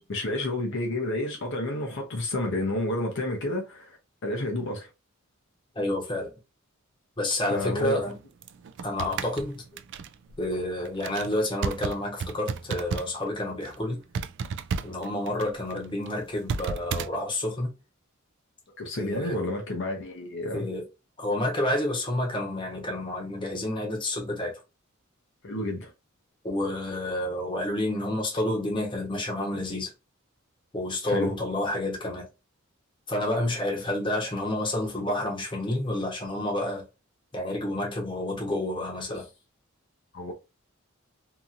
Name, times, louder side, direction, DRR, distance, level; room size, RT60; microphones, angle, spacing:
voice 1, 0.1-4.0 4.2-4.9 7.5-8.0 18.8-20.7 25.4-25.9 31.1-31.3 40.1-40.3, left 1 dB, 60° left, 0.7 m, -30 dB
voice 2, 5.7-6.3 7.2-8.2 8.8-9.6 10.4-14.0 14.8-17.7 19.0-19.5 20.5-20.8 21.2-24.6 26.4-29.9 30.7-32.3 33.1-36.8 37.3-39.3, left 1 dB, 25° left, 0.9 m, -29 dB
sound 1, 7.6-13.3 13.5-13.8 14.1-17.1, right 5 dB, 55° right, 0.3 m, -34 dB
2.8 x 2.6 x 2.4 m
head